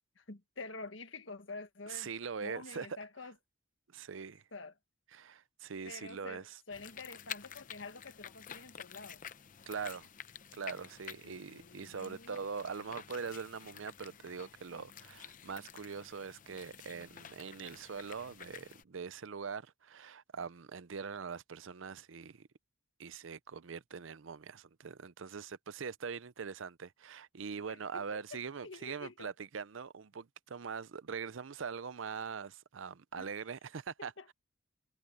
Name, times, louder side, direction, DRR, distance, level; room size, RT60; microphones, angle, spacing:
voice 1, 0.2-2.1 2.4-3.3 4.5-4.7 5.8-9.2 11.2-12.4 27.7-28.1 28.3-29.3 33.2-33.3 34.2-34.3, left 3 dB, 70° left, 1.7 m, -48 dB
voice 2, 1.9-3.0 3.9-4.4 5.1-6.4 9.7-10.1 10.5-22.5 23.0-34.3, right 5 dB, 75° right, 0.6 m, -42 dB
sound 1, 6.7-18.8, left 8 dB, 40° left, 0.7 m, -50 dB
head